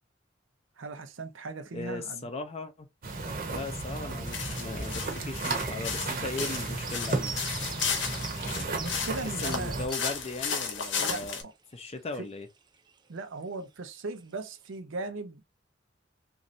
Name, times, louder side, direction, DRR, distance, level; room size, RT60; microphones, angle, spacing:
voice 1, 0.8-2.3 8.7-9.8 11.0-11.5 12.2-12.3 13.1-15.4, right 3 dB, 85° right, 0.6 m, -38 dB
voice 2, 1.7-2.9 3.5-7.3 9.4-11.4 11.7-12.5, left 2 dB, 35° left, 0.5 m, -38 dB
sound 1, 3.0-9.9, right 3 dB, 45° right, 0.9 m, -34 dB
sound 2, 4.3-11.4, left 6 dB, 70° left, 0.7 m, -34 dB
sound 3, 6.8-12.0 12.3-13.6 13.9-14.7, right 6 dB, 25° right, 0.5 m, -44 dB
3.1 x 2.6 x 2.6 m
head